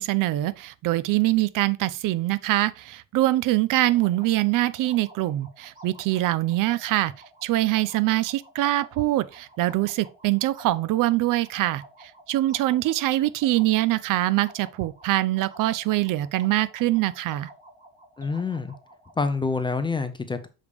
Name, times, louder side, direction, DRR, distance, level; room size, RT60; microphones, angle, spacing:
voice 1, 0.0-7.1 7.4-11.8 12.3-17.5, right 16 dB, 60° right, 0.5 m, -24 dB
sound 1, 3.9-19.2, right 1 dB, 20° right, 1.2 m, -50 dB
voice 2, 18.2-18.7 19.2-20.5, left 4 dB, 15° left, 0.4 m, -27 dB
6.6 x 5.0 x 3.4 m
cardioid pair, 175°, 37 cm